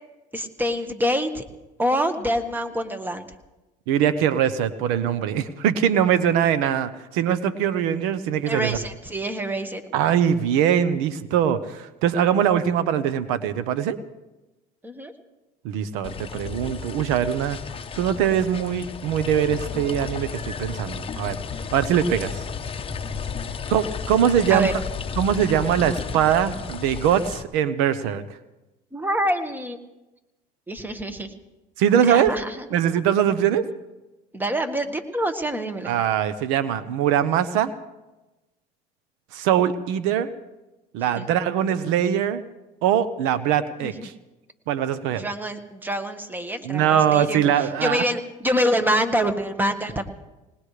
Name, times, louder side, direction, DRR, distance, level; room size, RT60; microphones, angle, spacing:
voice 1, 0.3-1.4 1.8-3.3 8.5-9.8 14.8-15.1 23.5-23.7 24.5-24.7 28.9-29.8 30.7-31.3 32.0-32.7 34.3-36.0 41.0-41.2 43.8-43.9 45.2-50.0, equal, 10° right, 8 dB, 1.5 m, -26 dB
voice 2, 3.9-8.8 9.9-14.0 15.6-17.6 18.0-21.4 21.7-22.4 23.7-24.7 25.2-28.2 31.8-32.3 32.7-33.6 35.9-37.7 39.3-40.3 40.9-42.4 42.8-44.1 44.7-45.2 46.6-48.0, right 9 dB, 80° right, 13 dB, 1.0 m, -22 dB
sound 1, 16.0-27.4, left 6 dB, 25° left, 0.9 m, -33 dB
20.5 x 20.0 x 3.3 m, 1.0 s
supercardioid pair, 105°, 21 cm